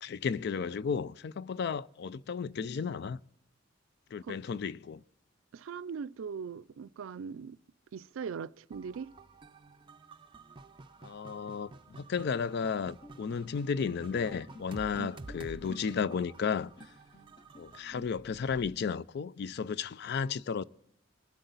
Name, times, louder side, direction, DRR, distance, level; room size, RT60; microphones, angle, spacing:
voice 1, 0.0-3.2 4.1-5.0 11.0-16.7 17.6-20.6, left 6 dB, 55° left, 0.4 m, -33 dB
voice 2, 5.5-7.6 7.9-9.1 15.0-15.2, right 6 dB, 85° right, 0.4 m, -40 dB
sound 1, 8.7-18.0, right 3 dB, 25° right, 0.5 m, -51 dB
sound 2, 13.0-18.7, left 1 dB, 25° left, 0.7 m, -54 dB
23.5 x 8.0 x 3.9 m
head